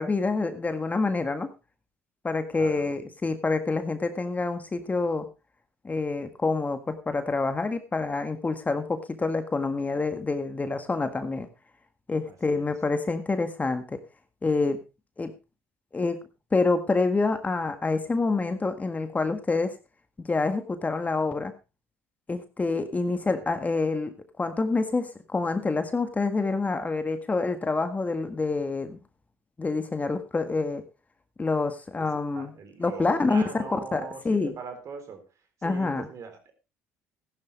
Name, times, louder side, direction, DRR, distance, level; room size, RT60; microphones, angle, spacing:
voice 1, 0.0-1.5 2.2-5.3 5.8-11.5 12.1-14.0 14.4-14.8 15.2-15.3 15.9-16.2 16.5-19.7 20.2-21.5 22.3-29.0 29.6-30.8 31.4-32.5 32.8-33.4 33.7-34.5 35.6-36.1, left 3 dB, 25° left, 9 dB, 1.7 m, -27 dB
voice 2, 2.6-3.0 12.2-12.7 23.4-23.5 32.0-32.1 32.4-35.3 35.6-36.5, right 5 dB, 50° right, 6 dB, 3.9 m, -41 dB
15.0 x 11.0 x 3.4 m, 0.28 s
hypercardioid pair, 65°, 7 cm